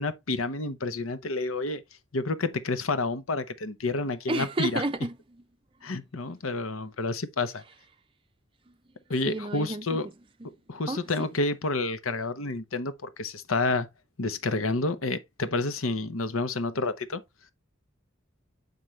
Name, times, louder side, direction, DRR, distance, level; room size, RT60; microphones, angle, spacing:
voice 1, 0.0-1.8 2.1-4.8 5.8-7.6 9.1-10.1 10.7-13.9 14.2-17.2, left 3 dB, 85° left, 1.0 m, -29 dB
voice 2, 4.3-5.2 9.3-10.0 10.9-11.0, right 2 dB, 25° right, 0.5 m, -30 dB
8.9 x 5.4 x 3.2 m
head